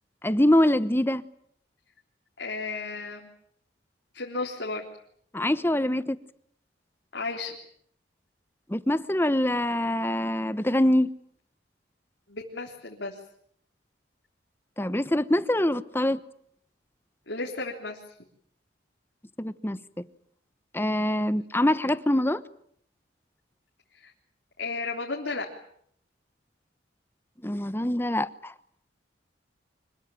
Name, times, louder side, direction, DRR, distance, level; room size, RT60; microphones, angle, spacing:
voice 1, 0.2-1.2 5.3-6.2 8.7-11.1 14.8-16.2 19.4-19.8 20.7-22.4 27.4-28.5, left 1 dB, 10° left, 1.0 m, -24 dB
voice 2, 2.4-3.3 4.1-4.8 7.1-7.6 12.3-13.1 17.3-18.0 24.0-24.1 24.6-25.5, left 3 dB, 70° left, 3.7 m, -33 dB
26.0 x 21.5 x 9.2 m
head